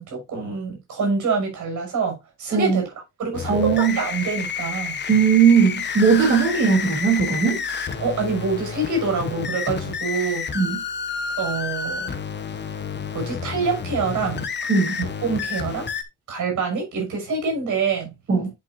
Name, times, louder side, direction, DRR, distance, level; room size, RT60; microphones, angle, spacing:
voice 1, 0.0-2.9 3.2-5.0 8.0-10.5 11.4-12.1 13.1-14.5 15.0-15.9 16.3-18.1, right 4 dB, 80° right, 6.1 m, -26 dB
voice 2, 2.5-2.8 3.5-4.0 5.1-7.6 10.5-10.8 14.7-14.9 18.3-18.5, right 6 dB, 40° right, 3.3 m, -18 dB
sound 1, 3.3-16.0, left 6 dB, 35° left, 1.1 m, -30 dB
10.5 x 5.8 x 2.7 m
wide cardioid pair, 160°, 30 cm